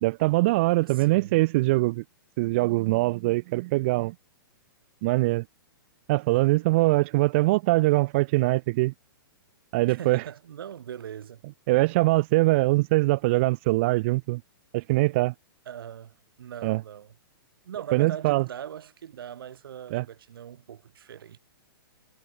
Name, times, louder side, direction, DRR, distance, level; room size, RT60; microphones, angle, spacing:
voice 1, 0.0-2.0 2.4-4.1 5.0-5.4 6.1-8.9 9.7-10.2 11.7-14.4 14.7-15.3 16.6-16.8 17.9-18.4 19.9-20.0, right 21 dB, 30° right, 0.3 m, -22 dB
voice 2, 0.8-1.4 9.9-11.4 15.7-17.1 17.7-21.4, right 9 dB, 70° right, 3.9 m, -40 dB
hypercardioid pair, 155°, 12 cm